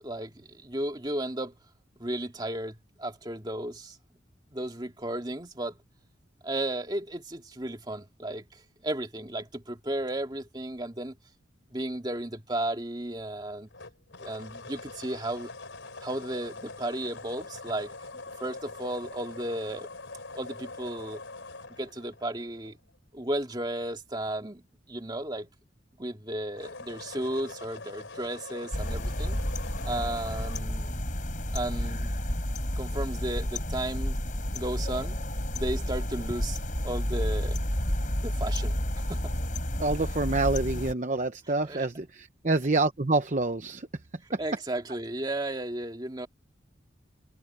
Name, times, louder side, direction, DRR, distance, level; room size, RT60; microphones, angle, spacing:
voice 1, 0.0-1.5 2.0-4.0 4.5-5.8 6.4-11.1 11.7-13.7 14.2-15.5 16.0-17.9 18.4-19.9 20.3-21.2 21.8-22.8 23.1-25.5 26.0-29.4 29.8-31.0 31.5-32.1 32.8-34.2 34.5-35.2 35.5-37.6 38.2-39.4 41.6-41.9 44.4-46.3, right 1 dB, 20° right, 2.3 m, -34 dB
pencil sharpener, 13.7-23.0 26.4-30.6, left 3 dB, 85° left, 3.7 m, -44 dB
sound 1, 28.7-40.9, equal, 40° left, 6.5 m, -31 dB
voice 2, 39.8-43.9 44.3-44.4, right 2 dB, 40° right, 0.8 m, -27 dB
head